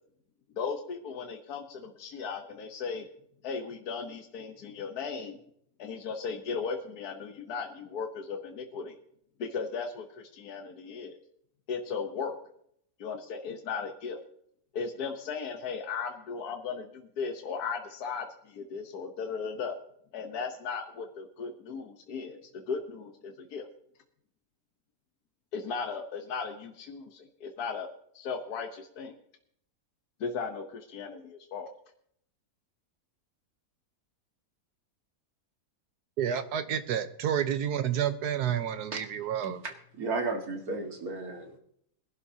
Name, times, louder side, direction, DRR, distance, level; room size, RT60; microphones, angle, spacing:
voice 1, 0.6-3.1 3.4-5.4 5.8-8.9 9.4-11.2 11.7-12.3 13.0-14.2 14.7-19.8 20.1-23.7 25.5-27.9 28.1-29.1 30.2-31.7, left 5 dB, 75° left, 3 dB, 1.5 m, -36 dB
voice 2, 36.2-39.6, right 9 dB, 85° right, 10 dB, 1.4 m, -30 dB
voice 3, 40.0-41.6, right 3 dB, 70° right, 3 dB, 2.3 m, -33 dB
22.0 x 11.5 x 2.8 m, 0.69 s
omnidirectional pair, 1.7 m